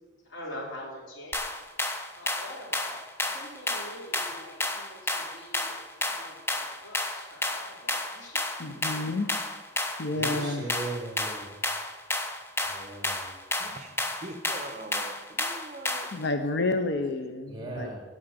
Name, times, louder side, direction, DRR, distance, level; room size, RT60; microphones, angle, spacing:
voice 1, 0.2-1.4 2.2-5.7 6.1-8.4 8.7-9.3, left 1 dB, 90° left, -3 dB, 4.0 m, -44 dB
sound 1, 1.3-16.2, left 2 dB, 15° left, 1.0 m, -32 dB
voice 2, 8.6-9.3 10.0-10.6 16.1-17.9, left 2 dB, 65° left, 8 dB, 0.8 m, -30 dB
voice 3, 10.1-11.5 12.6-13.3 17.5-18.0, right 2 dB, 25° right, -1 dB, 3.5 m, -38 dB
voice 4, 13.6-16.1 16.8-17.2, right 2 dB, 40° right, 8 dB, 1.1 m, -43 dB
9.6 x 9.1 x 8.1 m, 1.3 s
head